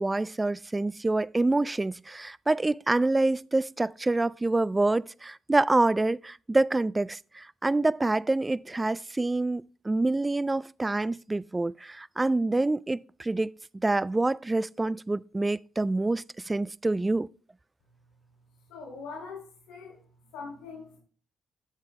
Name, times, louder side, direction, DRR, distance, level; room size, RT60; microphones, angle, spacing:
voice 1, 0.0-13.5 13.8-17.3, right 2 dB, 15° right, 0.3 m, -26 dB
voice 2, 18.7-20.0 20.3-21.0, left 4 dB, 90° left, 2.7 m, -42 dB
11.5 x 7.3 x 3.2 m
cardioid pair, 90°, 0 cm